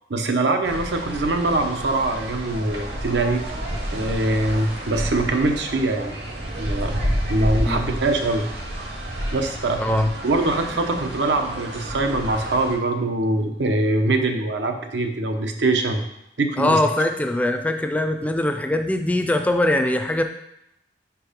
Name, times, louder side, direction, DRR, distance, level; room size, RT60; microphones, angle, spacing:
voice 1, 0.1-3.4 3.9-6.2 6.6-6.9 7.3-8.5 9.3-9.8 10.2-16.0 16.4-16.8, right 2 dB, 90° right, 5 dB, 0.8 m, -23 dB
sound 1, 0.6-12.8, equal, 70° right, 1.2 m, -30 dB
voice 2, 9.8-10.1 16.6-20.2, left 1 dB, 10° left, 6 dB, 0.3 m, -21 dB
5.0 x 4.6 x 5.1 m, 0.81 s
head